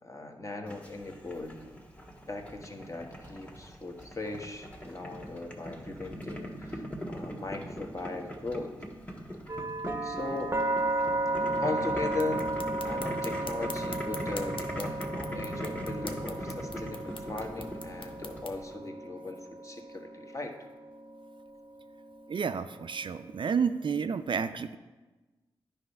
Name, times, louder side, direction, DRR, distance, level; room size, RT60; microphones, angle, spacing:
voice 1, 0.0-1.8 2.3-8.7 10.0-10.6 11.6-20.5, left 2 dB, 30° left, 3 dB, 1.2 m, -38 dB
Boiling, 0.7-18.7, equal, 10° left, 1.4 m, -40 dB
sound 1, 9.5-23.4, right 2 dB, 25° right, 0.7 m, -35 dB
sound 2, 12.1-18.6, left 4 dB, 60° left, 0.7 m, -46 dB
voice 2, 22.3-24.8, right 6 dB, 55° right, 10 dB, 0.4 m, -30 dB
9.4 x 3.4 x 5.3 m, 1.2 s
cardioid pair, 45°, 10 cm